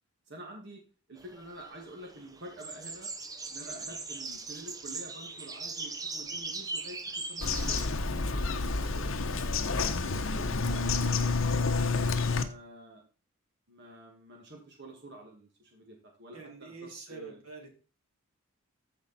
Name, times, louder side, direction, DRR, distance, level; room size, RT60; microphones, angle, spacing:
voice 1, 0.3-0.8 1.1-3.1 3.4-7.8 8.1-11.6 12.2-13.0 13.7-17.4, right 1 dB, 50° right, 0 dB, 2.1 m, -49 dB
sound 1, 1.2-7.9, right 3 dB, 15° right, 0.8 m, -40 dB
voice 2, 3.6-4.0 9.0-9.3 16.3-17.7, right 5 dB, 85° right, 1 dB, 3.4 m, -47 dB
Bird vocalization bird call bird song, 7.4-12.4, left 3 dB, 65° left, 1.0 m, -29 dB
14.5 x 5.2 x 4.3 m, 0.36 s
head